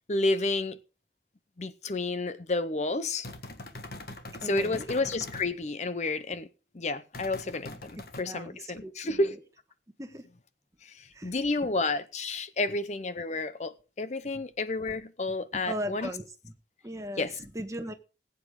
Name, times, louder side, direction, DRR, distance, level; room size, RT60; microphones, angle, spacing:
voice 1, 0.1-0.8 1.6-3.3 4.4-6.5 6.7-9.3 10.8-16.1 17.2-17.3, left 2 dB, 40° left, 0.6 m, -30 dB
sound 1, 3.2-5.5 7.1-8.2, left 2 dB, 55° left, 1.5 m, -42 dB
voice 2, 4.4-4.9 8.3-9.4 10.0-10.3 11.1-11.7 12.7-12.8 14.3-14.4 15.5-16.5 16.8-17.9, equal, 20° right, 1.3 m, -39 dB
20.0 x 8.3 x 3.7 m
head